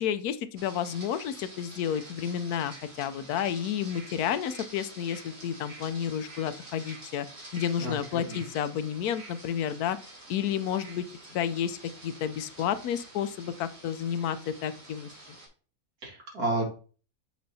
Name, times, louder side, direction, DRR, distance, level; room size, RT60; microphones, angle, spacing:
voice 1, 0.0-7.3 7.5-10.0 10.3-11.0 11.3-11.8 12.0-15.1, left 9 dB, 80° left, 13 dB, 1.1 m, -31 dB
sound 1, 0.6-15.5, right 2 dB, 55° right, 2.7 m, -48 dB
voice 2, 7.8-8.4 16.0-16.6, right 2 dB, 75° right, -1 dB, 2.6 m, -31 dB
7.8 x 5.1 x 2.7 m, 0.38 s
omnidirectional pair, 1.6 m